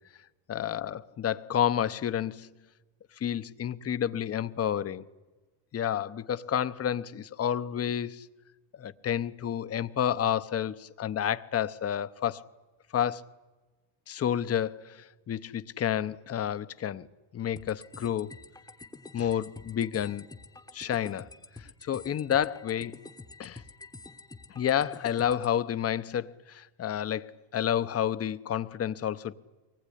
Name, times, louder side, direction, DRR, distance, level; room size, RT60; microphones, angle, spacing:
voice 1, 0.5-2.5 3.2-5.0 5.7-8.3 8.7-12.4 12.9-13.2 14.1-17.1 17.3-18.3 19.1-20.3 20.7-21.3 21.6-23.0 23.4-23.6 24.5-29.3, left 9 dB, 30° left, 0.8 m, -30 dB
sound 1, 17.6-25.5, left 3 dB, 10° left, 1.0 m, -48 dB
24.0 x 19.5 x 10.0 m
cardioid pair, 130°, 47 cm